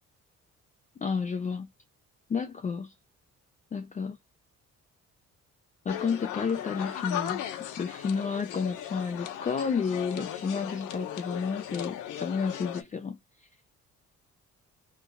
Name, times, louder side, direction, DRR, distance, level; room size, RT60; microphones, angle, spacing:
voice 1, 1.0-1.7 2.3-2.9 3.7-4.2 5.9-7.4 7.8-13.2, left 5 dB, 25° left, 0.5 m, -31 dB
sound 1, 5.9-12.8, left 10 dB, 85° left, 0.8 m, -37 dB
3.3 x 3.2 x 2.3 m
cardioid pair, 90°, 30 cm